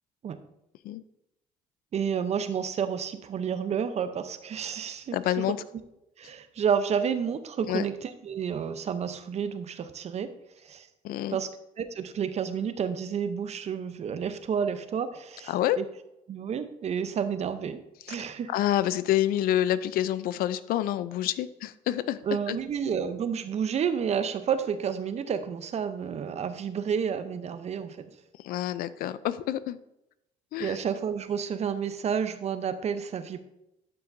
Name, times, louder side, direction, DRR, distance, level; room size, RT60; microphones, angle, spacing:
voice 1, 1.9-5.2 6.2-10.3 10.6-10.9 11.3-11.5 11.8-15.8 16.3-17.8 18.1-18.5 22.2-28.0 30.6-33.4, right 7 dB, 45° right, 11 dB, 0.7 m, -30 dB
voice 2, 5.1-5.6 7.7-7.8 11.0-11.4 15.5-15.8 18.1-18.2 18.5-22.6 28.4-29.8 30.5-30.8, left 12 dB, 70° left, 16 dB, 0.4 m, -28 dB
11.5 x 5.7 x 2.6 m, 0.87 s
cardioid pair, 95°, 16 cm